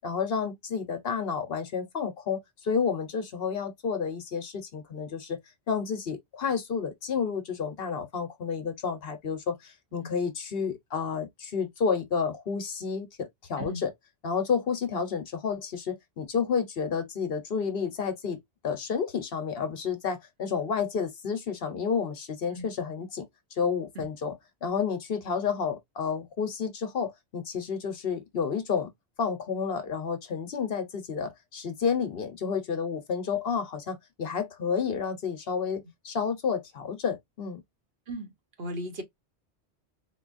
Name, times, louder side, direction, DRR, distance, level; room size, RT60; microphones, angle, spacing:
voice 1, 0.0-5.4 5.7-13.9 14.2-24.4 24.6-28.9 29.2-37.6, left 6 dB, 60° left, 1.0 m, -30 dB
voice 2, 38.6-39.0, equal, 65° right, 1.3 m, -36 dB
4.2 x 2.3 x 2.5 m
omnidirectional pair, 1.1 m